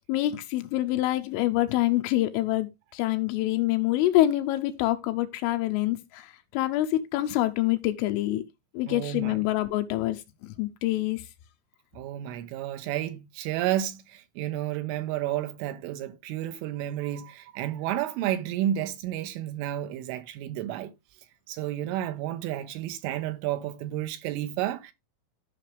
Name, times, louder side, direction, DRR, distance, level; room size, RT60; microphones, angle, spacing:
voice 1, 0.0-8.4 8.7-11.2, left 15 dB, 80° left, 3.1 m, -26 dB
voice 2, 8.9-9.4 11.9-20.9 21.5-24.9, right 12 dB, 80° right, 3.2 m, -31 dB
14.5 x 5.8 x 3.2 m
omnidirectional pair, 5.9 m